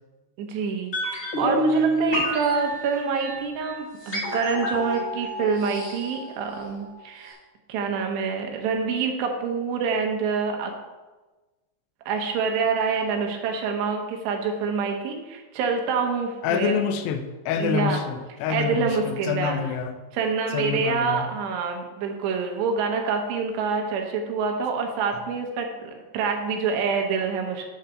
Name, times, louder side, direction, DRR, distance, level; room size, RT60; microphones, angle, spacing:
voice 1, 0.4-0.9 1.4-7.4 7.7-10.7 12.1-16.9 17.6-18.0 18.5-19.6 20.1-27.7, right 5 dB, 80° right, 2 dB, 3.0 m, -26 dB
sound 1, 0.9-7.0 7.2-7.3, right 1 dB, 45° left, 0.9 m, -28 dB
voice 2, 16.4-20.0 20.5-21.3, left 8 dB, 80° left, 8 dB, 2.6 m, -27 dB
8.1 x 4.0 x 6.7 m, 1.2 s
omnidirectional pair, 4.9 m